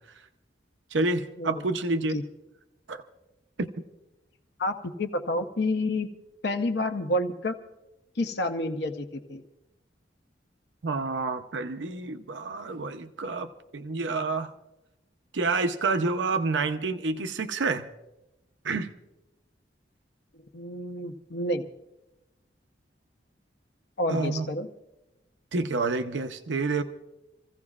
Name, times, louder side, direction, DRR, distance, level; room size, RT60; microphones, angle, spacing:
voice 1, 0.9-2.2 2.9-3.0 3.6-3.8 10.8-13.5 13.7-14.5 15.3-17.9 18.6-18.9 24.1-24.4 25.5-26.8, right 3 dB, 90° right, 8 dB, 0.7 m, -28 dB
voice 2, 4.6-6.1 6.4-7.6 8.2-9.4 20.5-21.7 24.0-24.7, left 1 dB, 65° left, 6 dB, 0.8 m, -29 dB
27.5 x 15.5 x 2.4 m, 0.96 s
head